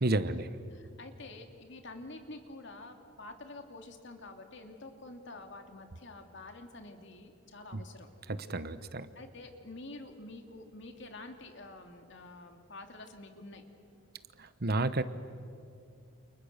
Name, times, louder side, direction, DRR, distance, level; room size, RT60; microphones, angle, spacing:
voice 1, 0.0-0.5 7.7-7.8 8.3-9.1 14.4-15.0, right 2 dB, 50° right, 13 dB, 1.0 m, -31 dB
voice 2, 0.7-8.1 9.1-13.6, left 2 dB, 65° left, 5 dB, 2.6 m, -48 dB
29.5 x 28.5 x 6.7 m, 2.4 s
head